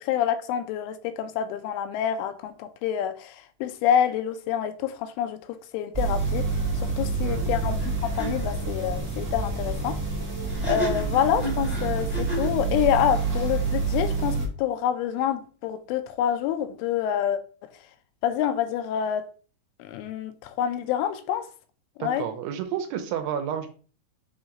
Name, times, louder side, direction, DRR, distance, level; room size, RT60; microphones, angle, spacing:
voice 1, 0.0-6.5 6.8-10.0 10.6-17.4 18.2-19.3 19.8-21.5 22.0-22.3, left 9 dB, 85° left, 3.1 m, -27 dB
sound 1, 5.9-14.5, right 4 dB, 55° right, 0.8 m, -28 dB
sound 2, 7.8-7.9 8.2-8.3 10.5-12.6, left 1 dB, 5° left, 1.5 m, -33 dB
voice 2, 22.0-23.7, right 8 dB, 80° right, 3.1 m, -31 dB
7.6 x 3.0 x 5.1 m
omnidirectional pair, 5.6 m